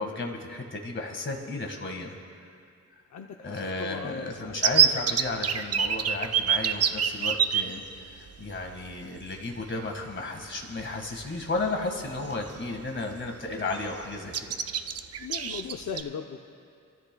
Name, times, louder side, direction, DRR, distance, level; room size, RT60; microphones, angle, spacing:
voice 1, 0.0-2.2 3.4-14.5, left 2 dB, 40° left, 2 dB, 1.8 m, -33 dB
voice 2, 3.1-4.6 15.2-16.5, left 6 dB, 65° left, 3 dB, 0.7 m, -38 dB
sound 1, 4.6-7.6 8.6-8.7 9.0-9.2 10.8-10.9 11.4-11.7 12.1-12.8 13.1-13.3 13.5-14.0 14.3-16.0, right 8 dB, 55° right, 0.5 m, -25 dB
25.5 x 14.0 x 2.3 m, 2.4 s
wide cardioid pair, 120°, 30 cm